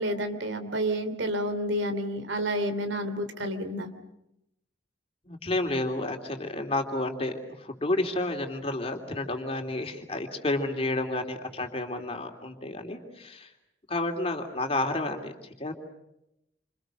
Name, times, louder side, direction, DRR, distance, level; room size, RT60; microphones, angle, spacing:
voice 1, 0.0-3.9, equal, 85° right, 9 dB, 3.0 m, -30 dB
voice 2, 5.3-13.5 13.9-15.7, left 2 dB, 30° left, 5 dB, 3.1 m, -31 dB
28.5 x 27.5 x 6.5 m, 0.84 s
head